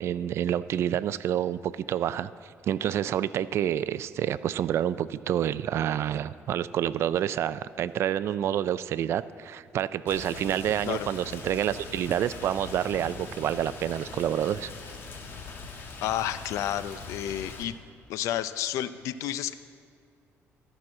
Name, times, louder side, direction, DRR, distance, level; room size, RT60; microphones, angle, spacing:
voice 1, 0.0-14.7, right 10 dB, 55° right, 16 dB, 0.3 m, -28 dB
Rain, 10.1-17.6, left 4 dB, 45° left, 1.2 m, -42 dB
voice 2, 16.0-17.7 18.1-19.5, left 11 dB, 85° left, 14 dB, 0.4 m, -31 dB
13.0 x 6.1 x 7.4 m, 2.3 s
cardioid pair, 140°, 5 cm